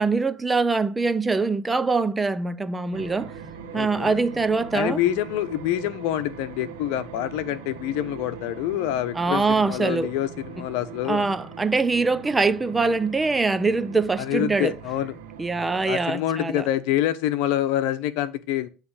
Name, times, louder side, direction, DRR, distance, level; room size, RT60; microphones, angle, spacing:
voice 1, 0.0-3.3 3.7-5.0 9.1-10.1 11.1-14.7 15.4-16.6, right 3 dB, 15° right, 0.5 m, -23 dB
sound 1, 2.9-16.0, right 6 dB, 85° right, 1.1 m, -41 dB
voice 2, 3.7-4.2 4.7-11.3 14.2-15.1 15.8-18.7, left 12 dB, 75° left, 0.8 m, -26 dB
9.4 x 3.2 x 6.4 m
supercardioid pair, 105°, 0 cm